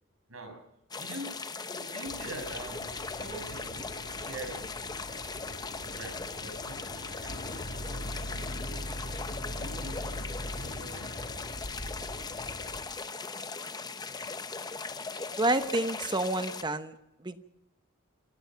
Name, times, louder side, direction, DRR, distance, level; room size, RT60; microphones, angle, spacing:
voice 1, 0.3-0.6 1.0-1.4 1.7-3.9 4.2-4.7 5.9-7.4 7.9-8.9 9.6-10.2 10.5-11.2 13.7-13.8, right 2 dB, 80° right, 5 dB, 6.6 m, -44 dB
sound 1, 0.9-16.6, left 4 dB, 20° left, 0.7 m, -39 dB
Boat Water vehicle, 2.1-12.8, left 1 dB, 55° left, 3.1 m, -41 dB
voice 2, 15.4-16.9 17.2-17.4, right 2 dB, 20° right, 9 dB, 1.1 m, -29 dB
27.0 x 17.0 x 5.8 m, 0.87 s
head